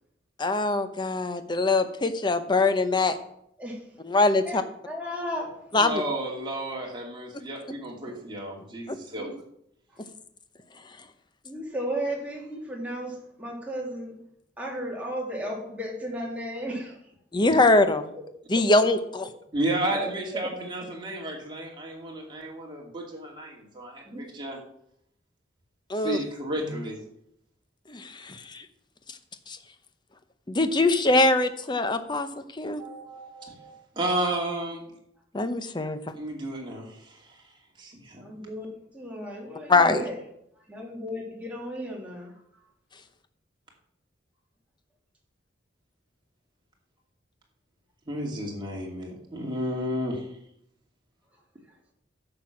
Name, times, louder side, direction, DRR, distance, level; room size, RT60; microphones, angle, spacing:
voice 1, 0.4-3.2 4.1-4.6 5.7-6.0 8.9-9.0 17.3-18.1 18.5-19.2 25.9-26.2 27.9-28.6 29.5-29.6 30.5-32.3 32.5-32.8 35.3-36.0 39.7-40.0, left 2 dB, 25° left, 10 dB, 0.8 m, -23 dB
voice 2, 3.6-3.9 4.4-5.7 9.2-9.4 9.9-10.0 11.4-14.2 14.6-17.0 19.9-20.6 24.1-24.2 38.2-40.2 40.7-42.4, equal, 10° right, -2 dB, 2.8 m, -35 dB
voice 3, 5.8-9.3 19.5-24.6 25.9-27.0 32.8-34.8 36.1-37.3 37.8-38.2 48.1-50.2, right 1 dB, 25° right, -1 dB, 2.5 m, -32 dB
10.5 x 6.9 x 5.9 m, 0.74 s
head